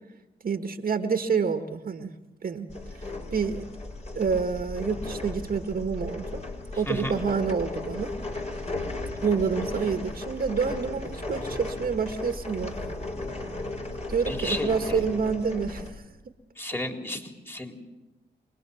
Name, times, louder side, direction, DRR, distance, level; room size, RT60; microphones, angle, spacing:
voice 1, 0.4-2.1 2.4-2.7 3.3-3.7 4.1-6.4 6.8-8.1 9.2-12.7 14.1-16.0, right 5 dB, 55° right, 6 dB, 1.7 m, -28 dB
sound 1, 2.7-15.9, left 2 dB, 40° left, 5.5 m, -35 dB
voice 2, 6.7-7.1 14.3-15.1 16.6-17.7, left 1 dB, 10° left, 3 dB, 4.0 m, -33 dB
26.0 x 20.5 x 7.2 m, 1.0 s
supercardioid pair, 55°, 18 cm